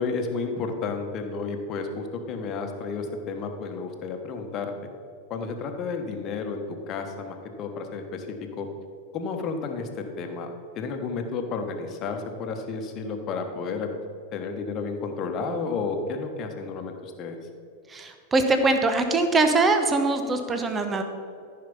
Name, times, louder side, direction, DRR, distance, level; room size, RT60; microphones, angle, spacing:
voice 1, 0.0-4.7 5.3-8.3 8.6-8.7 9.1-13.9 14.3-17.4, left 4 dB, 35° left, 4 dB, 1.3 m, -32 dB
voice 2, 17.9-21.0, right 3 dB, 15° right, 6 dB, 1.0 m, -22 dB
14.0 x 5.8 x 5.5 m, 2.3 s
figure-of-eight pair, 90°, 0 cm